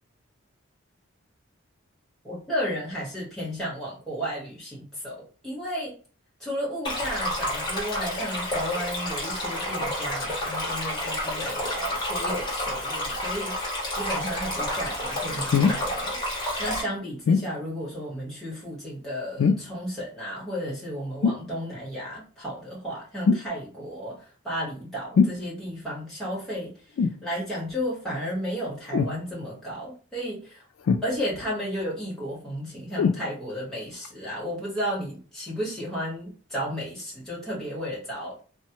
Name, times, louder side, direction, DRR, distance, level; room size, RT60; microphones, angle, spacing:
voice 1, 2.2-6.0 6.4-13.5 14.0-30.6 31.0-38.4, equal, ahead, -6 dB, 1.3 m, -33 dB
Stream, 6.8-16.8, left 1 dB, 20° left, 0.9 m, -30 dB
sound 1, 15.5-15.8 17.3-17.5 19.4-19.8 21.2-21.5 23.2-23.5 25.1-25.4 27.0-27.2 28.9-29.2 30.9-31.4 33.0-33.2 34.0-34.1, left 5 dB, 75° left, 0.3 m, -22 dB
3.1 x 2.2 x 2.8 m, 0.39 s
head